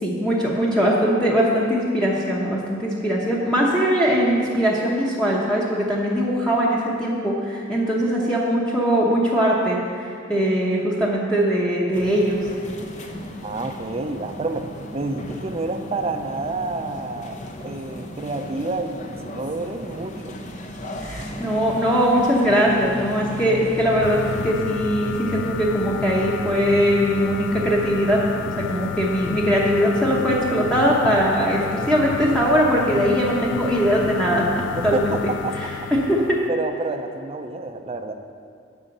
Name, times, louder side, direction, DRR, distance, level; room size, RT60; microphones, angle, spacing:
voice 1, 0.0-12.4 21.0-28.2 28.6-34.4 34.8-35.1 35.6-36.4, equal, 5° left, -5 dB, 0.9 m, -21 dB
sound 1, 11.9-24.5, left 1 dB, 40° left, 0.7 m, -35 dB
voice 2, 13.4-20.4 32.3-32.4 34.7-35.5 36.5-38.1, right 3 dB, 30° right, 7 dB, 0.5 m, -29 dB
sound 2, 24.0-36.5, left 7 dB, 60° left, 0.3 m, -31 dB
8.1 x 5.6 x 7.7 m, 2.4 s
head